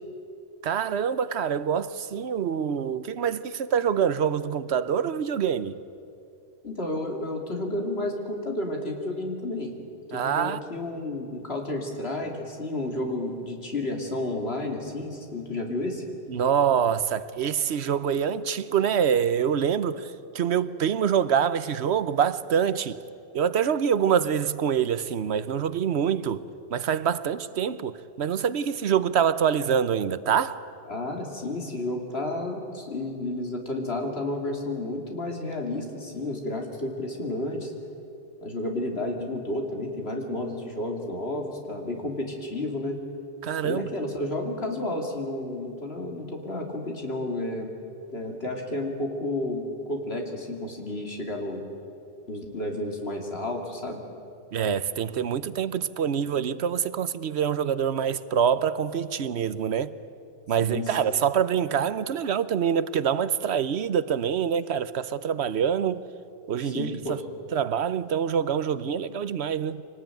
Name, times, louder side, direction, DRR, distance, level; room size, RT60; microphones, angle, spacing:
voice 1, 0.6-5.8 10.1-10.6 16.3-23.0 23.3-26.4 26.7-30.6 43.4-43.9 54.5-59.9 60.5-66.0 66.5-67.2 67.5-69.8, right 8 dB, 85° right, 1.1 m, -25 dB
voice 2, 6.6-9.7 10.1-16.0 30.9-37.7 38.4-43.0 43.6-47.7 48.1-51.6 52.3-54.0 60.6-61.2 66.6-67.2, left 1 dB, 70° left, 3.1 m, -31 dB
25.0 x 19.0 x 9.1 m
omnidirectional pair, 1.1 m